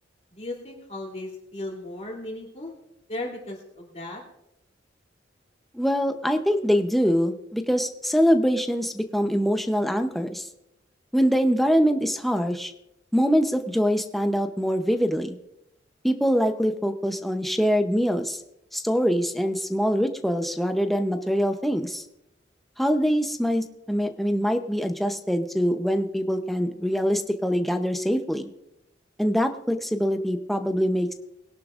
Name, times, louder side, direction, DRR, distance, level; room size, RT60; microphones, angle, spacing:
voice 1, 0.3-2.7 3.1-4.2, left 1 dB, 35° left, -2 dB, 2.8 m, -36 dB
voice 2, 5.7-10.5 11.1-12.7 13.1-15.4 16.0-18.4 18.7-22.0 22.8-28.5 29.2-31.1, equal, ahead, 6 dB, 0.7 m, -24 dB
21.0 x 11.5 x 2.5 m, 0.83 s
head